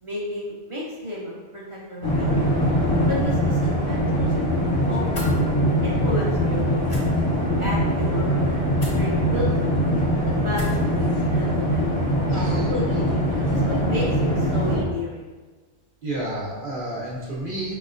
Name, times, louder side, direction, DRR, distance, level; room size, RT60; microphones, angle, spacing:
voice 1, 0.0-2.5 3.1-4.3 4.9-5.5 5.8-7.0 7.6-9.7 10.4-10.7 11.0-12.0 12.3-13.1 13.5-15.3, left 1 dB, 30° right, -5 dB, 0.9 m, -32 dB
sound 1, 2.0-14.8, equal, 75° left, 1.2 m, -22 dB
sound 2, 5.1-5.3 6.8-7.0 8.8-9.0 10.5-10.9, equal, 50° left, 1.3 m, -33 dB
voice 2, 12.3-12.7 16.0-17.8, right 1 dB, 55° right, -6 dB, 1.2 m, -30 dB
5.3 x 3.0 x 2.5 m, 1.3 s
omnidirectional pair, 1.0 m